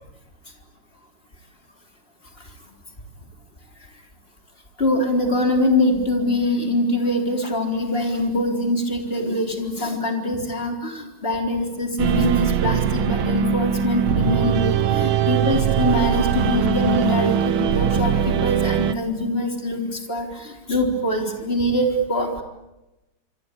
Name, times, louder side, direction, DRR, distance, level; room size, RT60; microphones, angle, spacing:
voice 1, 4.8-22.4, left 1 dB, 15° left, 3 dB, 3.9 m, -23 dB
sound 1, 12.0-18.9, right 9 dB, 90° right, 1.1 m, -21 dB
26.5 x 25.5 x 8.5 m, 0.97 s
omnidirectional pair, 3.9 m